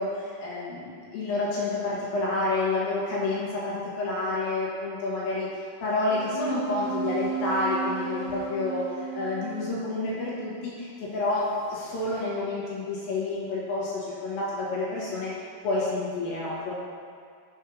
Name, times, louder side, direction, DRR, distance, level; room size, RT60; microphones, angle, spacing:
voice 1, 0.0-15.3 15.6-16.7, left 2 dB, 70° left, -6 dB, 2.8 m, -29 dB
sound 1, 6.1-9.9 11.5-12.2, right 5 dB, 65° right, 3.5 m, -34 dB
7.0 x 5.3 x 5.4 m, 2.1 s
omnidirectional pair, 4.9 m